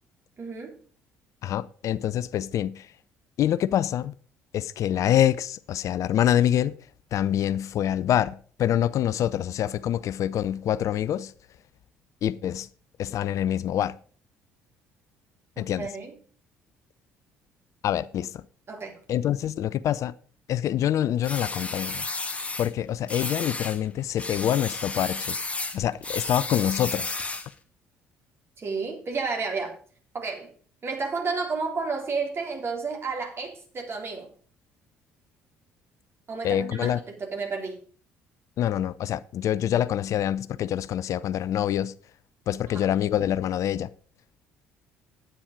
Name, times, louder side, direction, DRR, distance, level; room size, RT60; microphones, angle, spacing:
voice 1, 0.4-0.8 15.6-16.1 18.7-19.0 28.6-29.8 30.1-30.5 30.8-34.3 36.3-37.8 42.7-42.9, right 4 dB, 40° right, 3.7 m, -31 dB
voice 2, 1.4-2.9 3.4-4.2 4.5-6.7 7.1-11.3 12.2-12.7 13.0-13.9 15.6-15.9 17.8-18.4 19.1-20.1 20.5-22.1 22.6-25.4 25.7-27.1 36.4-37.0 38.6-41.9 42.5-43.9, left 11 dB, 55° left, 0.5 m, -26 dB
sound 1, 21.2-22.7 23.1-23.8 24.2-27.5, left 3 dB, 20° left, 2.1 m, -32 dB
9.9 x 8.9 x 5.1 m
hypercardioid pair, 55°, 6 cm